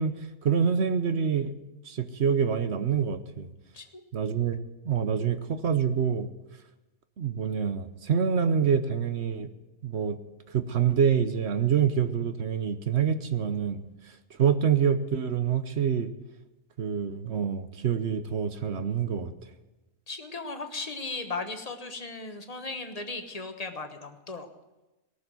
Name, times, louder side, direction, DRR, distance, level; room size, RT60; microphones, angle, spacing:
voice 1, 0.0-1.5 1.8-3.5 4.1-4.6 4.8-6.3 7.2-9.5 9.8-10.2 10.5-13.8 14.4-16.1 16.8-19.3, right 7 dB, 55° right, 10 dB, 1.0 m, -26 dB
voice 2, 20.1-24.5, left 3 dB, 30° left, 6 dB, 1.2 m, -36 dB
18.0 x 7.1 x 9.2 m, 1.0 s
omnidirectional pair, 1.4 m